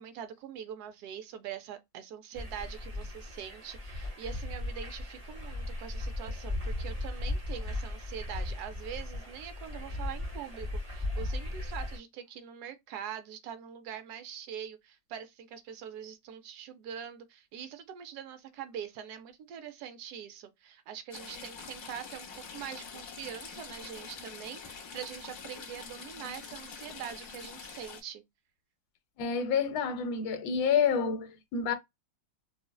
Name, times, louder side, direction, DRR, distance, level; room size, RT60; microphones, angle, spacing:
voice 1, 0.0-22.3 22.5-28.2, right 9 dB, 75° right, 0.9 m, -43 dB
sound 1, 2.3-12.0, left 2 dB, 25° right, 0.7 m, -37 dB
Stream / Trickle dribble, 21.1-28.0, left 5 dB, 60° left, 0.8 m, -45 dB
voice 2, 29.2-31.7, left 6 dB, 80° left, 1.3 m, -28 dB
3.8 x 2.0 x 2.2 m
omnidirectional pair, 2.1 m